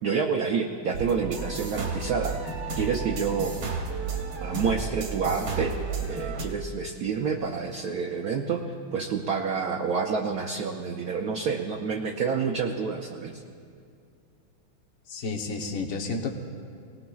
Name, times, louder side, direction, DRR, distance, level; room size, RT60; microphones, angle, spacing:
voice 1, 0.0-3.6 4.4-8.6 8.9-13.4, right 5 dB, 65° right, 1 dB, 1.0 m, -28 dB
sound 1, 0.9-6.5, right 4 dB, 85° right, 2.3 m, -32 dB
voice 2, 15.1-16.3, left 3 dB, 50° left, 3 dB, 1.2 m, -31 dB
19.5 x 18.5 x 2.3 m, 2.3 s
omnidirectional pair, 2.2 m